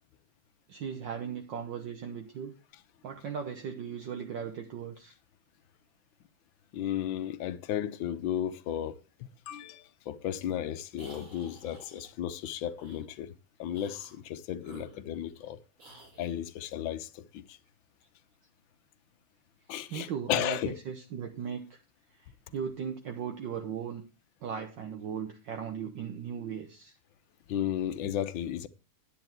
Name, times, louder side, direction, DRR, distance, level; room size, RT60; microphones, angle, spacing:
voice 1, 0.7-2.5 3.0-5.1 19.9-21.8 22.1-24.0 24.4-26.9, right 7 dB, 60° right, 1.6 m, -37 dB
voice 2, 6.7-15.6 16.2-17.6 19.7-20.8 27.5-28.7, left 10 dB, 70° left, 1.5 m, -34 dB
sound 1, 10.9-12.1 12.8-13.0 13.7-14.2 14.6-15.5 15.8-16.4, right 2 dB, 85° right, 6.5 m, -52 dB
10.0 x 9.1 x 4.5 m
omnidirectional pair, 2.4 m